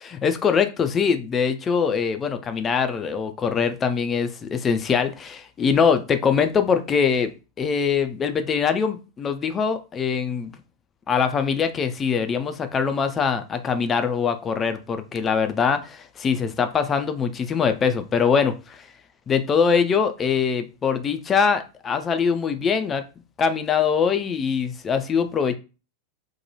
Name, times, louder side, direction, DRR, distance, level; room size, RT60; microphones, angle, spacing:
voice 1, 0.0-7.3 7.6-10.5 11.1-18.9 19.3-23.0 23.4-25.6, left 6 dB, 20° left, 9 dB, 0.3 m, -23 dB
2.8 x 2.2 x 2.8 m, 0.32 s
figure-of-eight pair, 90°, 0 cm